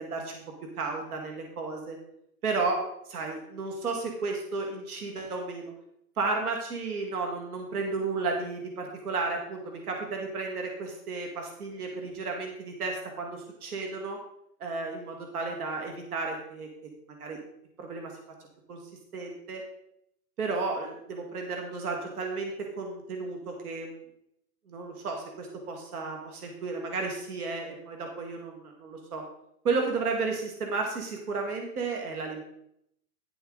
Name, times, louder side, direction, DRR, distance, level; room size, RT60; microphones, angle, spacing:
voice 1, 0.0-2.0 2.4-2.8 3.1-5.7 6.2-14.2 14.6-16.7 17.1-17.4 17.8-18.1 18.7-18.8 19.1-19.6 20.4-24.0 24.7-29.2 29.6-32.4, right 3 dB, 75° right, 2 dB, 1.9 m, -33 dB
10.5 x 7.1 x 3.8 m, 0.77 s
hypercardioid pair, 180°, 45 cm